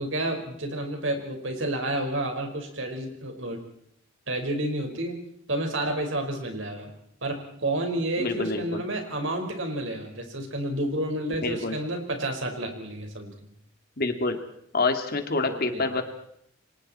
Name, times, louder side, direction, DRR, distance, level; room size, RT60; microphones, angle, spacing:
voice 1, 0.0-3.6 4.3-5.2 5.5-6.9 7.2-13.3 15.5-15.9, right 1 dB, 70° right, 3 dB, 5.1 m, -30 dB
voice 2, 8.2-8.8 11.4-11.8 14.0-14.4 14.7-16.0, left 3 dB, 50° left, 6 dB, 2.5 m, -27 dB
29.5 x 24.5 x 4.4 m, 0.70 s
head